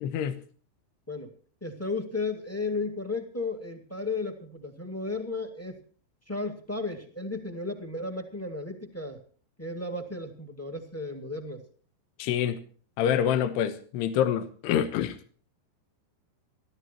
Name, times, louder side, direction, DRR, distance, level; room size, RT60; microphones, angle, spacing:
voice 1, 0.0-0.4 12.2-12.6 13.0-15.2, left 9 dB, 80° left, 9 dB, 3.1 m, -26 dB
voice 2, 1.6-5.8 6.3-9.2 9.6-11.6, left 3 dB, 10° left, 5 dB, 0.8 m, -34 dB
22.5 x 15.0 x 3.0 m, 0.43 s
omnidirectional pair, 4.8 m